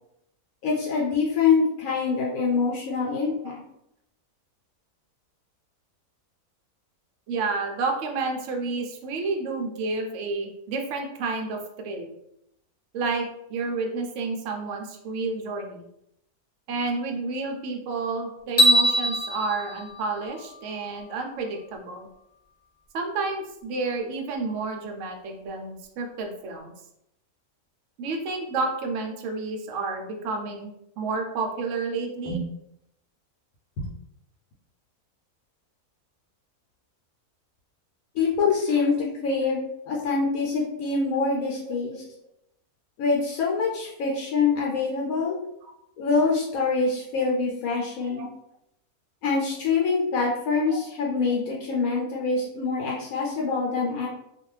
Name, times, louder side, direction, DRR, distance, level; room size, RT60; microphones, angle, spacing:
voice 1, 0.6-3.6 32.2-32.4 33.8-33.9 38.1-42.0 43.0-45.4 46.0-48.3 49.2-54.1, left 4 dB, 75° left, -3 dB, 1.0 m, -25 dB
voice 2, 7.3-11.6 11.8-12.1 12.9-15.9 16.7-22.1 22.9-26.7 28.0-32.4 41.6-41.7 45.3-45.4 45.6-45.7 48.2-48.3 50.7-50.8, right 3 dB, 65° right, 3 dB, 0.8 m, -30 dB
sound 1, 18.6-20.8, equal, 10° left, 1.1 m, -23 dB
2.5 x 2.3 x 3.1 m, 0.79 s
omnidirectional pair, 1.5 m